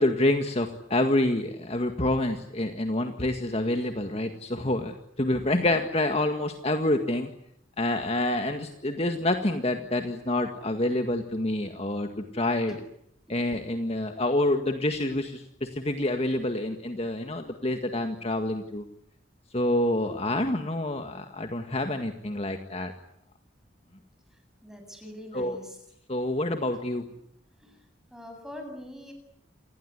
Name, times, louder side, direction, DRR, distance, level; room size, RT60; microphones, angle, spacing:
voice 1, 0.0-4.9 5.2-7.3 7.8-12.7 13.3-18.8 19.5-22.9 25.3-25.6 26.1-27.0, left 1 dB, 35° left, 6 dB, 1.9 m, -27 dB
voice 2, 24.6-25.8 27.6-27.7 28.1-29.1, left 1 dB, 5° right, 5 dB, 7.7 m, -43 dB
28.5 x 20.0 x 9.7 m, 0.72 s
head